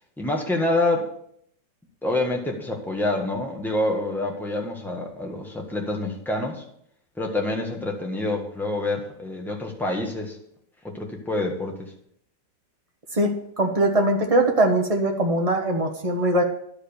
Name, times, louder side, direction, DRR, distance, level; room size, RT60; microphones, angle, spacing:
voice 1, 0.2-1.1 2.0-6.6 7.2-10.4 10.8-11.9, left 2 dB, ahead, 0 dB, 1.4 m, -27 dB
voice 2, 13.1-16.4, right 1 dB, 20° right, 2 dB, 1.2 m, -21 dB
11.0 x 5.1 x 6.9 m, 0.69 s
omnidirectional pair, 1.9 m